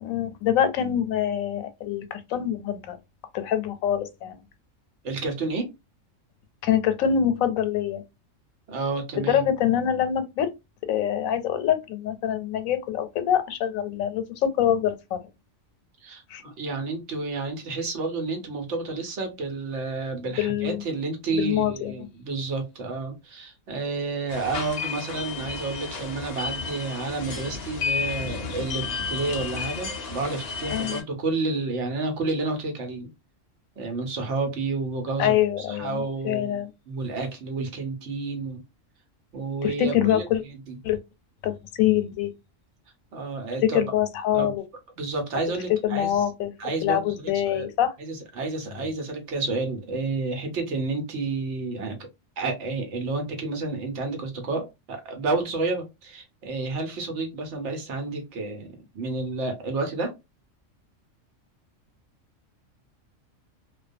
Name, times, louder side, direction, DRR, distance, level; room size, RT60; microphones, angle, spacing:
voice 1, 0.0-3.0 3.3-4.4 6.6-8.0 9.2-10.5 10.9-15.3 16.3-16.4 20.4-20.8 21.3-21.9 30.7-31.0 35.2-36.7 39.6-40.4 40.8-41.0 41.4-42.3 43.6-44.6 45.8-46.5 46.8-47.9, left 10 dB, 90° left, 1.0 m, -25 dB
voice 2, 5.0-5.7 8.7-9.5 16.0-33.1 33.8-38.6 39.3-40.7 43.1-43.8 44.3-44.6 45.0-46.2 46.6-47.7 48.0-52.1 52.4-58.7 58.9-60.1, right 3 dB, 65° right, 1.0 m, -30 dB
sound 1, 24.3-31.0, left 5 dB, 70° left, 0.4 m, -32 dB
2.3 x 2.2 x 2.5 m
omnidirectional pair, 1.4 m